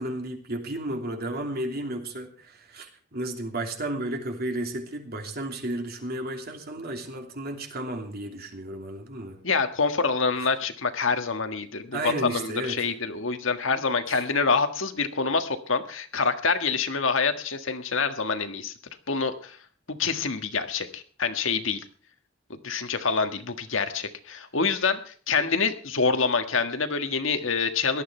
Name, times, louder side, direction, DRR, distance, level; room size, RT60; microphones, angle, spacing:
voice 1, 0.0-9.4 10.4-10.5 11.9-12.9 14.1-14.3, right 1 dB, 50° right, 4 dB, 3.0 m, -33 dB
voice 2, 9.4-18.7 19.1-19.6 19.9-21.8 22.5-28.0, left 4 dB, 70° left, 8 dB, 1.6 m, -26 dB
18.0 x 12.5 x 4.5 m, 0.43 s
head